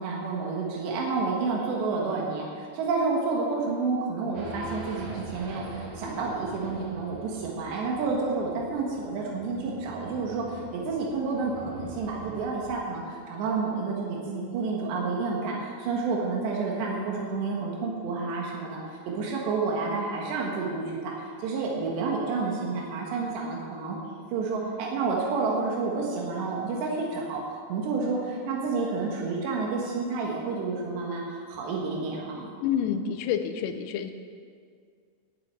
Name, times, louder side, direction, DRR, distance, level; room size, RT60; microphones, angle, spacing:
voice 1, 0.0-24.0 24.3-27.4 27.7-32.5, right 4 dB, 90° right, -2 dB, 3.8 m, -30 dB
Race car auto racing / Idling / Accelerating revving vroom, 4.3-13.0, right 2 dB, 55° right, 3.3 m, -43 dB
voice 2, 32.6-34.1, left 8 dB, 90° left, 8 dB, 2.9 m, -28 dB
12.5 x 7.7 x 8.8 m, 2.1 s
omnidirectional pair, 4.8 m